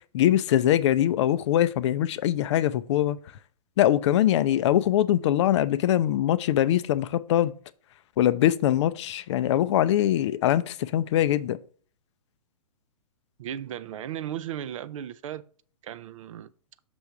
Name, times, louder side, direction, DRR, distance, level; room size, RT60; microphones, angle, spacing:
voice 1, 0.1-3.2 3.8-7.5 8.2-11.6, left 12 dB, 45° left, 0.4 m, -22 dB
voice 2, 13.4-15.4 15.8-16.5, right 10 dB, 55° right, 0.5 m, -35 dB
6.1 x 3.4 x 5.4 m
figure-of-eight pair, 120°, 20 cm